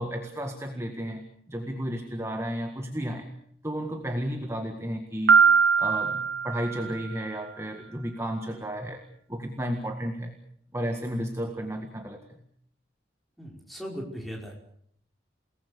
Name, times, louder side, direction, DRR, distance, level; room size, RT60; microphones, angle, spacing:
voice 1, 0.0-3.3 3.6-5.4 5.8-9.0 9.3-10.3 10.7-12.2, equal, 15° right, 5 dB, 1.7 m, -33 dB
Piano, 5.3-7.2, right 6 dB, 90° right, 0.9 m, -21 dB
voice 2, 13.4-14.6, equal, ahead, -1 dB, 5.2 m, -38 dB
29.0 x 19.0 x 6.8 m, 0.66 s
head